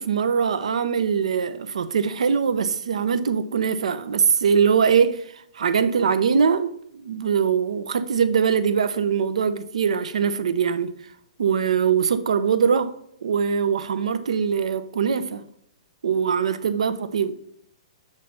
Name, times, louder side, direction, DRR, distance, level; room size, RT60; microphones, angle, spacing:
voice 1, 0.0-5.2 5.5-6.7 7.0-10.9 11.4-12.9 13.2-15.4 16.0-17.3, right 6 dB, 85° right, 0.7 m, -22 dB
7.2 x 3.2 x 5.5 m
hypercardioid pair, 180°, 3 cm